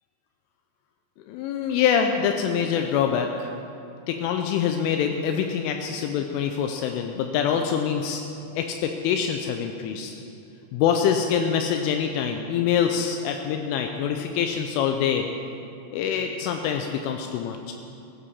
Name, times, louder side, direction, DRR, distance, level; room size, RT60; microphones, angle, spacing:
voice 1, 1.3-3.5 4.1-8.2 8.6-10.1 10.7-15.3 15.9-17.7, left 7 dB, 85° left, 4 dB, 3.2 m, -25 dB
15.0 x 8.4 x 7.2 m, 2.7 s
omnidirectional pair, 5.5 m